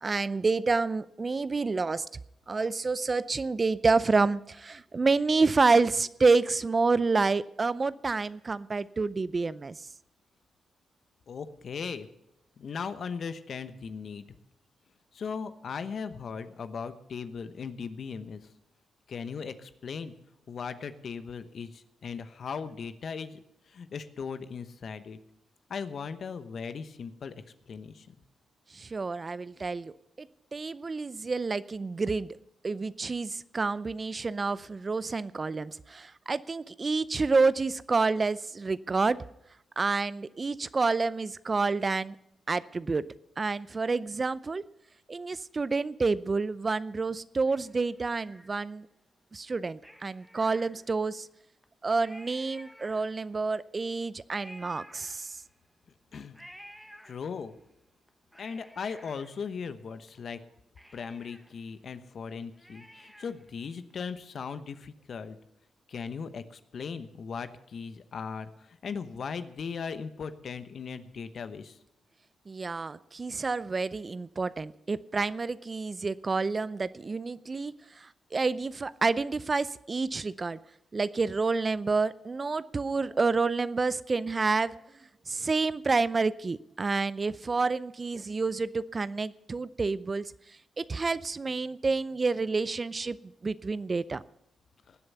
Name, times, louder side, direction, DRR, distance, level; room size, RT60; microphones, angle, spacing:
voice 1, 0.0-2.1 2.5-9.9 28.7-32.4 32.6-39.2 39.8-42.2 42.5-43.0 43.4-44.6 45.1-48.9 49.3-51.3 51.8-55.4 72.5-80.6 80.9-84.8 85.3-94.2, right 4 dB, 40° right, 18 dB, 0.5 m, -29 dB
voice 2, 11.3-12.1 12.6-14.3 15.1-18.4 19.1-20.1 20.5-23.4 23.7-25.2 25.7-27.3 27.7-28.1 56.1-56.4 57.1-57.5 58.4-60.4 60.9-65.4 65.9-68.5 68.8-71.8 94.9-95.0, left 6 dB, 60° left, 11 dB, 1.0 m, -38 dB
Cat, 47.4-48.9 49.8-51.2 51.6-51.7 51.9-53.4 54.3-55.6 56.3-57.6 58.1-60.1 60.4-60.5 60.8-63.5 63.9-64.0, equal, ahead, 1.4 m, -53 dB
19.5 x 7.9 x 5.6 m, 0.81 s
hypercardioid pair, 45°, 0 cm